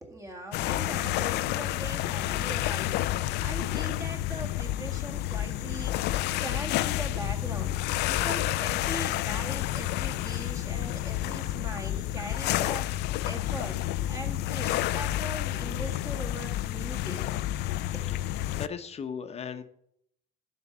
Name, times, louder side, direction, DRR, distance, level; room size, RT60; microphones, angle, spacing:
voice 1, 0.0-17.4 17.9-18.1, right 1 dB, 20° right, 4 dB, 2.0 m, -41 dB
sound 1, 0.5-18.7, left 15 dB, 80° left, 0.5 m, -30 dB
voice 2, 18.6-19.6, left 7 dB, 40° left, 9 dB, 1.0 m, -36 dB
11.0 x 4.7 x 7.3 m, 0.71 s
cardioid pair, 110°, 17 cm